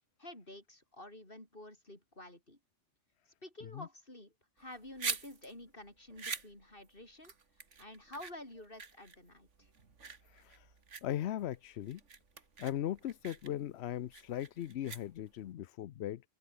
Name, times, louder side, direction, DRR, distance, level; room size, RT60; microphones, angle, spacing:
voice 1, 0.2-2.6 3.4-7.3 7.8-9.7, left 1 dB, 50° left, 6.6 m, -50 dB
sound 1, 4.6-15.5, right 5 dB, 85° right, 2.4 m, -45 dB
voice 2, 10.2-10.7 11.0-12.0 12.6-16.2, left 12 dB, 70° left, 0.9 m, -38 dB
open air
omnidirectional pair, 1.2 m